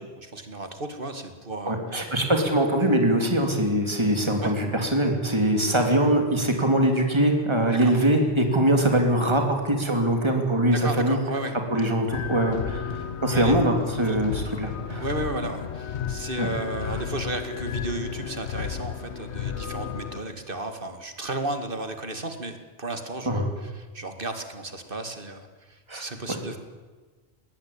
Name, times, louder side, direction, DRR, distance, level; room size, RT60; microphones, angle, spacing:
voice 1, 0.2-1.8 4.4-4.5 7.8-8.0 10.7-11.8 13.3-13.6 14.1-14.2 15.0-26.6, right 2 dB, 50° right, 7 dB, 2.3 m, -34 dB
voice 2, 1.6-11.2 11.7-15.0 16.4-16.5 16.9-17.0 23.2-23.4 25.9-26.0, right 1 dB, 25° right, 3 dB, 3.2 m, -23 dB
sound 1, 12.1-20.2, left 8 dB, 75° left, 1.2 m, -33 dB
19.5 x 19.5 x 8.8 m, 1.3 s
omnidirectional pair, 1.2 m